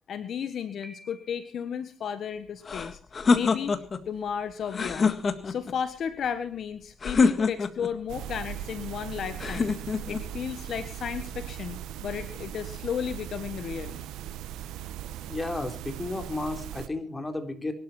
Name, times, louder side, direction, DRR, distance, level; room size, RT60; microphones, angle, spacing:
voice 1, 0.1-3.0 3.3-3.8 4.1-5.2 5.4-9.8 10.1-14.0, left 8 dB, 65° left, 11 dB, 1.4 m, -34 dB
Piano, 0.8-1.8, equal, 15° right, 2.5 m, -51 dB
sound 1, 2.6-4.0 4.7-5.7 7.0-7.9 9.4-10.2, left 4 dB, 40° left, 1.8 m, -25 dB
sound 2, 8.1-16.9, right 11 dB, 90° right, 1.0 m, -39 dB
voice 2, 15.3-17.7, left 2 dB, 20° left, 6 dB, 3.7 m, -33 dB
23.0 x 12.5 x 4.4 m, 0.40 s
cardioid pair, 90°, 0 cm